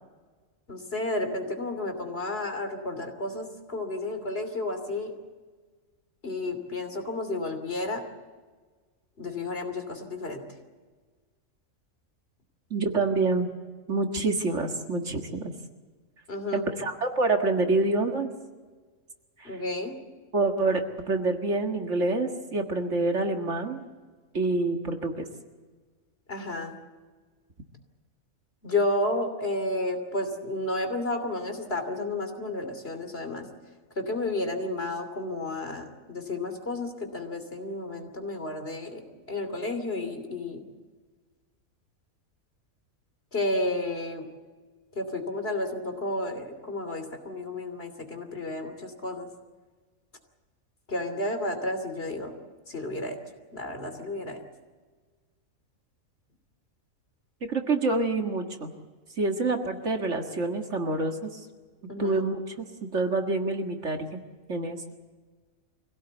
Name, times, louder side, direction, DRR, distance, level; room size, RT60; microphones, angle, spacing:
voice 1, 0.7-5.1 6.2-8.0 9.2-10.5 16.3-16.6 19.4-20.0 26.3-26.7 28.6-33.5 33.9-40.6 43.3-44.3 44.9-49.3 50.9-52.3 52.7-53.2 53.5-54.4 61.9-62.2, left 2 dB, 45° left, 6 dB, 3.2 m, -32 dB
voice 2, 12.7-13.5 13.9-15.5 16.5-18.3 19.4-19.6 20.3-23.8 24.3-25.3 57.5-58.7 59.2-61.5 62.0-62.4 62.9-64.2 64.5-64.8, right 3 dB, 60° right, 4 dB, 2.1 m, -27 dB
25.0 x 17.0 x 8.2 m, 1.4 s
omnidirectional pair, 1.4 m